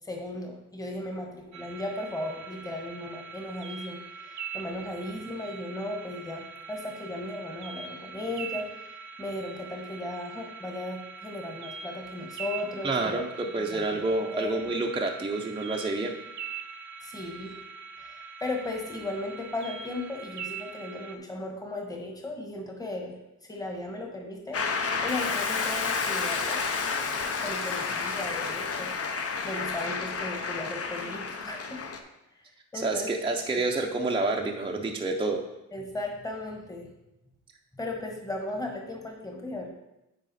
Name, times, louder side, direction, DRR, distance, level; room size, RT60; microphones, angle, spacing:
voice 1, 0.0-13.2 13.7-14.6 17.0-17.6 18.0-23.1 23.4-24.6 25.0-26.6 27.4-28.9 29.4-31.8 32.3-33.1 35.7-36.9 37.7-39.7, left 2 dB, 10° left, 2 dB, 1.2 m, -36 dB
sound 1, 1.5-21.2, right 6 dB, 70° right, 0.7 m, -42 dB
voice 2, 12.8-16.2 32.7-35.4, right 2 dB, 15° right, 1 dB, 0.5 m, -28 dB
Shout / Cheering / Applause, 24.5-32.0, left 4 dB, 50° left, 0.7 m, -31 dB
Hiss, 25.1-29.8, left 6 dB, 75° left, 0.8 m, -39 dB
9.1 x 4.7 x 4.1 m, 0.92 s
wide cardioid pair, 145°, 31 cm